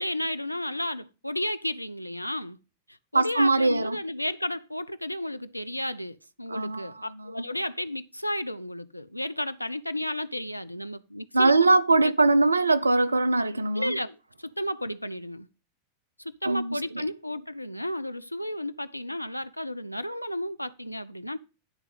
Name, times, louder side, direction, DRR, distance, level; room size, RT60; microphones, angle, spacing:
voice 1, 0.0-2.6 3.1-11.7 13.7-15.5 16.2-21.4, left 1 dB, 90° left, 0.4 m, -33 dB
voice 2, 3.1-4.0 6.5-7.3 11.3-13.9 16.4-17.0, right 3 dB, 80° right, 0.5 m, -22 dB
10.5 x 3.6 x 7.2 m
figure-of-eight pair, 90°, 0 cm